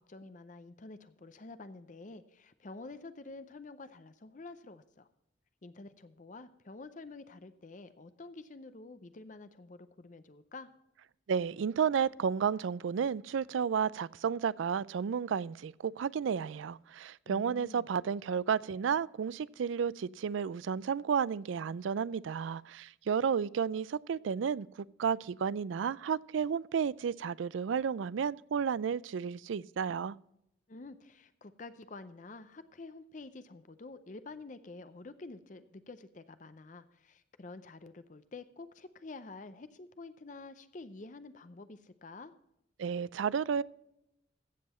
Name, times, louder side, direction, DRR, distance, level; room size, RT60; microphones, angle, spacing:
voice 1, 0.0-5.1 5.6-10.7 17.3-17.9 30.7-42.3, left 3 dB, 40° left, 0.6 m, -49 dB
voice 2, 11.3-30.1 42.8-43.6, right 7 dB, 80° right, 0.4 m, -32 dB
15.0 x 7.6 x 4.3 m
head